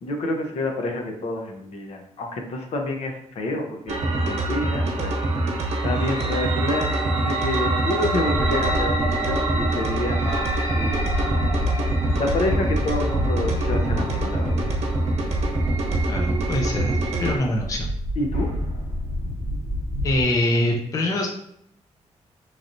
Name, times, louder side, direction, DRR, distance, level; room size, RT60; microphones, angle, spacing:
voice 1, 0.0-4.0 4.3-10.5 10.8-11.3 12.0-14.6 18.2-18.5, left 2 dB, 65° left, 2 dB, 0.7 m, -29 dB
sound 1, 3.9-17.4, right 2 dB, 75° right, 1.0 m, -24 dB
sound 2, 8.3-20.2, left 1 dB, 90° left, 1.4 m, -29 dB
voice 2, 16.1-17.9 20.0-21.3, left 1 dB, 30° left, 0 dB, 0.5 m, -24 dB
4.0 x 3.1 x 2.6 m, 0.73 s
wide cardioid pair, 155°, 12 cm